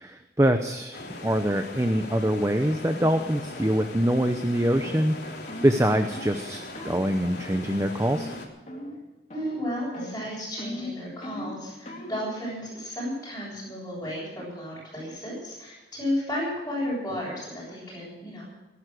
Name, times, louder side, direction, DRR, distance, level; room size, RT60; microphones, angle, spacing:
voice 1, 0.0-8.3, right 1 dB, 15° right, 7 dB, 0.8 m, -24 dB
sound 1, 0.9-8.5, left 2 dB, 70° left, 3.7 m, -40 dB
sound 2, 2.9-3.1 3.6-3.8 4.2-4.4 4.8-5.1 5.5-5.7 6.1-6.4 6.7-7.0 7.4-7.7 8.0-8.4 8.7-9.0 9.3-9.7 9.9-12.3, left 1 dB, 40° left, 3.6 m, -39 dB
voice 2, 9.3-18.5, left 1 dB, 15° left, -9 dB, 7.3 m, -33 dB
19.0 x 11.0 x 6.6 m, 1.1 s
head